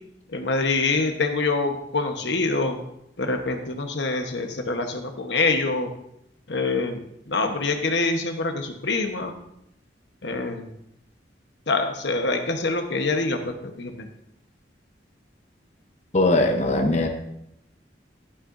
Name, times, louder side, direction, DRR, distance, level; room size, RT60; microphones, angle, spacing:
voice 1, 0.3-2.8 3.2-5.9 6.5-7.0 7.3-9.3 10.2-10.7 11.7-14.1, left 3 dB, 80° left, 5 dB, 1.1 m, -25 dB
voice 2, 16.1-17.1, left 2 dB, 40° left, 4 dB, 0.8 m, -20 dB
11.5 x 11.5 x 2.6 m, 0.78 s
head